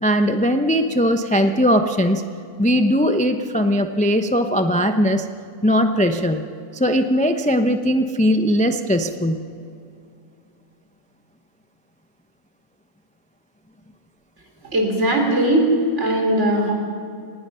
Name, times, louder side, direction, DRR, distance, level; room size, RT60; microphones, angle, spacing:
voice 1, 0.0-2.2 2.6-5.3 5.6-6.4 6.7-9.4, equal, 10° left, 6 dB, 0.5 m, -19 dB
voice 2, 14.6-15.7 16.0-16.7, right 1 dB, 50° right, 2 dB, 4.1 m, -19 dB
25.5 x 19.5 x 5.7 m, 2.5 s
omnidirectional pair, 1.5 m